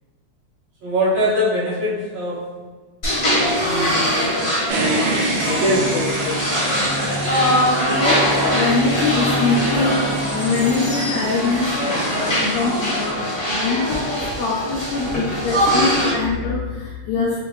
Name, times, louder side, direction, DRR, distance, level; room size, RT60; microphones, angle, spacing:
voice 1, 0.8-2.4 3.4-4.4 4.7-4.9 5.4-6.6 15.8-16.1, equal, 60° right, -10 dB, 2.1 m, -23 dB
sound 1, 3.0-16.1, equal, 40° left, 0.7 m, -22 dB
sound 2, 4.7-13.1, right 1 dB, 75° right, 1.9 m, -27 dB
voice 2, 7.9-17.4, left 4 dB, 80° left, -5 dB, 1.6 m, -23 dB
5.5 x 2.5 x 3.0 m, 1.4 s
omnidirectional pair, 3.6 m